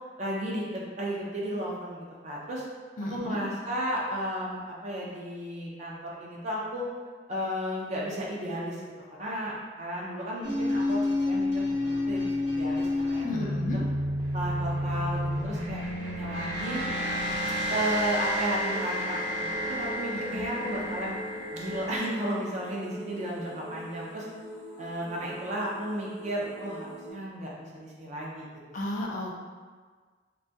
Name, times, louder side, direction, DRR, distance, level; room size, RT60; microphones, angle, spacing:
voice 1, 0.2-2.7 3.1-6.9 7.3-8.8 9.2-13.8 14.3-16.8 17.7-21.1 21.5-24.3 24.8-28.5, equal, 40° right, -4 dB, 0.4 m, -34 dB
voice 2, 3.0-3.4 13.2-13.8 20.3-20.5 28.7-29.4, left 1 dB, 45° left, -2 dB, 0.4 m, -33 dB
sound 1, 10.4-22.0, left 1 dB, 70° right, 0.8 m, -30 dB
sound 2, 18.6-27.1, right 1 dB, 85° left, 0.7 m, -42 dB
2.2 x 2.1 x 2.6 m, 1.5 s
head